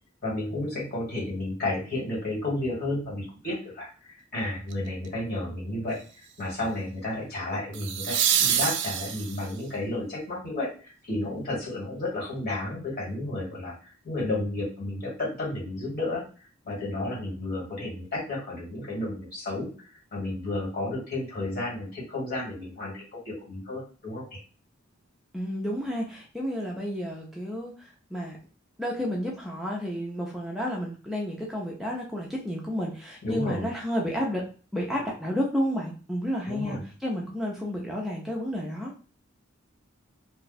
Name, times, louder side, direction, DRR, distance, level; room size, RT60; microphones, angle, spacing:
voice 1, 0.2-16.2 16.6-24.4 33.2-33.7 36.5-36.8, left 2 dB, 50° left, -4 dB, 1.8 m, -32 dB
sound 1, 4.7-5.1 7.7-9.6 12.5-12.6, right 9 dB, 60° right, 0.4 m, -26 dB
voice 2, 25.3-28.4 28.8-38.9, equal, ahead, -3 dB, 0.5 m, -31 dB
2.6 x 2.3 x 3.9 m, 0.37 s
head